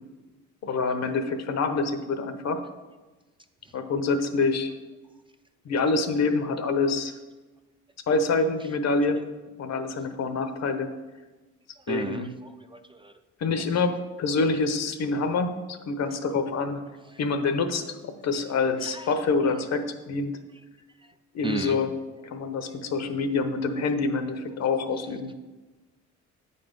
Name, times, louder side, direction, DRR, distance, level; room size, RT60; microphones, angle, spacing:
voice 1, 0.6-2.6 3.7-4.7 5.6-7.1 8.1-9.2 9.6-10.9 11.9-12.3 13.4-16.8 17.2-20.3 21.3-21.9 22.2-25.3, left 4 dB, 60° left, 8 dB, 0.8 m, -26 dB
voice 2, 11.9-12.2 12.7-13.1 18.8-19.0 21.4-21.8, right 4 dB, 15° right, 7 dB, 0.4 m, -33 dB
8.3 x 4.2 x 5.2 m, 1.2 s
cardioid pair, 90°, 30 cm